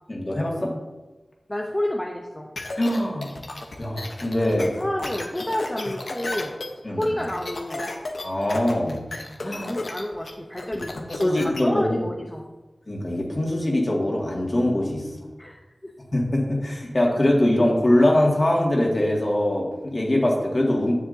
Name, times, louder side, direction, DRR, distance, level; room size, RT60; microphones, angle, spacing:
voice 1, 0.1-0.7 2.8-3.3 3.8-4.7 6.8-7.1 8.2-9.0 9.4-9.8 11.1-12.0 12.9-15.1 16.1-20.9, left 1 dB, 40° left, -2 dB, 2.2 m, -22 dB
voice 2, 1.5-2.5 4.6-6.5 6.9-7.9 9.6-12.4 15.4-15.6 15.8-15.9, left 1 dB, 20° left, 0 dB, 0.8 m, -29 dB
sound 1, 2.6-11.6, left 2 dB, 70° left, 1.0 m, -34 dB
9.8 x 7.1 x 2.8 m, 1.1 s
cardioid pair, 40°, 0 cm